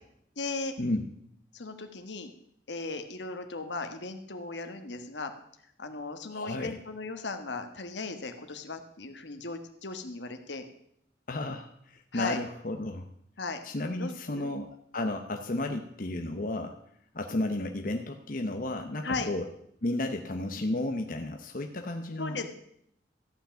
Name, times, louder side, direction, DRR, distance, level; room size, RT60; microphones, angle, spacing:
voice 1, 0.4-0.8 1.5-2.3 2.7-5.3 5.8-10.7 12.1-12.4 13.4-13.6 14.0-14.5 19.0-19.3 22.2-22.5, left 3 dB, 75° left, 7 dB, 1.4 m, -37 dB
voice 2, 6.3-6.8 11.3-13.1 13.6-16.8 17.1-19.4 19.8-22.5, left 2 dB, 50° left, 4 dB, 0.9 m, -33 dB
14.0 x 5.9 x 8.7 m, 0.72 s
head